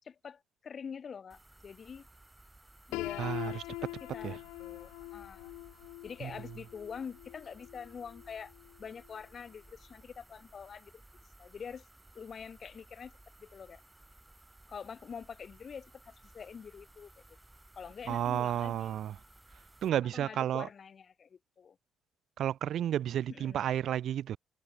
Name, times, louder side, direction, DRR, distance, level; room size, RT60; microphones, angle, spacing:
voice 1, 0.0-2.1 2.9-5.5 6.0-8.5 8.8-10.9 11.4-11.9 12.1-13.1 13.4-13.8 14.7-17.1 17.8-19.0 20.1-21.8 23.3-23.6, left 6 dB, 50° left, 1.9 m, -45 dB
sound 1, 1.3-19.9, right 2 dB, 15° right, 7.2 m, -59 dB
Piano, 2.9-8.8, left 21 dB, 75° left, 0.3 m, -43 dB
voice 2, 3.2-3.6 4.2-4.4 6.2-6.3 18.1-19.1 19.8-20.7 22.4-24.4, right 10 dB, 65° right, 0.8 m, -32 dB
hypercardioid pair, 45°, 0 cm